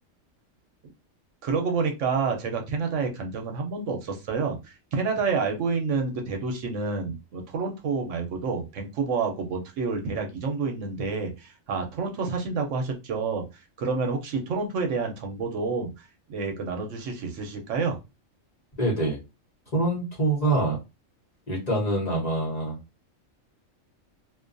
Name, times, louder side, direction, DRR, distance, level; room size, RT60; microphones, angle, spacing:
voice 1, 1.4-13.4 13.8-15.9 16.3-18.0, right 4 dB, 75° right, 3 dB, 0.9 m, -28 dB
voice 2, 18.8-19.2 19.7-20.8 21.5-22.8, right 2 dB, 35° left, -3 dB, 0.9 m, -25 dB
2.4 x 2.2 x 2.5 m, 0.26 s
omnidirectional pair, 1.3 m